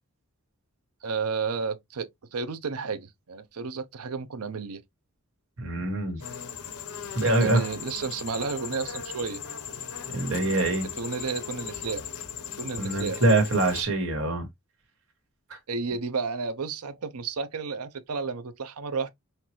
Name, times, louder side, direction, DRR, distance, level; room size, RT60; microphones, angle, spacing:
voice 1, 1.0-4.8 7.4-9.4 11.0-12.0 12.6-13.2 15.7-19.1, right 5 dB, 80° right, 0.7 m, -32 dB
voice 2, 5.6-6.2 7.2-7.6 10.1-10.9 12.8-14.5, right 2 dB, 65° right, 1.9 m, -24 dB
sound 1, 6.2-13.8, left 8 dB, 85° left, 0.9 m, -38 dB
5.8 x 2.6 x 3.0 m
head